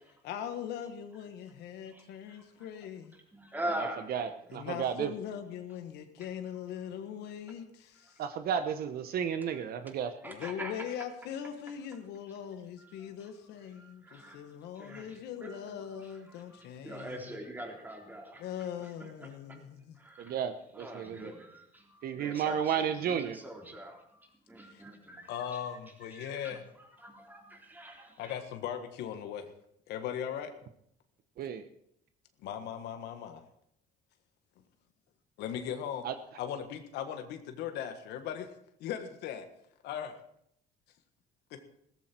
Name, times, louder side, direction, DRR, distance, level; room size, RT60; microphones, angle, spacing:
voice 1, 0.2-3.1 4.5-8.2 10.2-17.5 18.4-20.0 24.6-24.8 25.3-26.6 28.2-29.5 29.9-30.5 32.4-33.4 35.4-36.0 36.3-38.5 38.8-39.5 39.8-40.2 41.5-41.6, left 9 dB, 85° left, 7 dB, 1.6 m, -40 dB
voice 2, 1.8-2.7 3.3-4.6 6.2-6.3 9.4-9.5 10.2-10.9 12.8-13.3 13.7-18.9 19.2-19.6 19.9-20.4 20.7-25.6 26.0-28.3, right 1 dB, 10° right, 0 dB, 3.8 m, -44 dB
voice 3, 3.7-5.1 8.2-10.1 20.2-21.3 22.0-23.4 31.4-31.6 36.0-36.1, right 8 dB, 65° right, 9 dB, 1.0 m, -33 dB
16.5 x 14.0 x 4.5 m, 0.73 s
cardioid pair, 110°, 17 cm